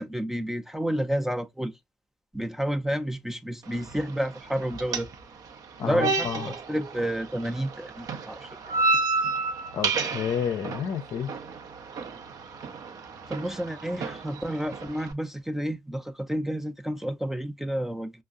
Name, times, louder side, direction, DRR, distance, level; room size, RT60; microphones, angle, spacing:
voice 1, 0.0-1.7 2.3-5.1 5.8-8.5 13.3-18.1, equal, 5° right, 0.5 m, -30 dB
sound 1, 3.6-15.1, right 3 dB, 55° right, 0.6 m, -32 dB
voice 2, 5.8-6.5 9.7-11.3, left 8 dB, 60° left, 0.5 m, -30 dB
5.3 x 2.0 x 2.4 m
hypercardioid pair, 45°, 7 cm